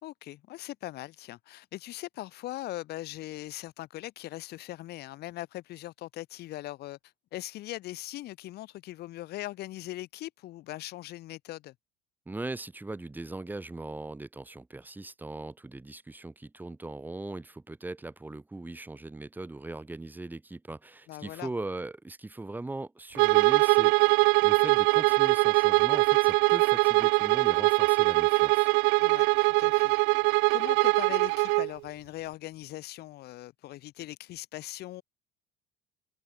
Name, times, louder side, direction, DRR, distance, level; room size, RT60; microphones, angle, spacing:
voice 1, 0.0-7.0 7.3-11.7 21.1-21.5 29.0-29.9 30.5-35.0, left 16 dB, 60° left, 4.1 m, -40 dB
voice 2, 12.3-24.1 24.4-28.7, right 2 dB, 10° right, 4.8 m, -39 dB
Bowed string instrument, 23.1-31.7, right 30 dB, 75° right, 0.5 m, -22 dB
cardioid pair, 140°, 19 cm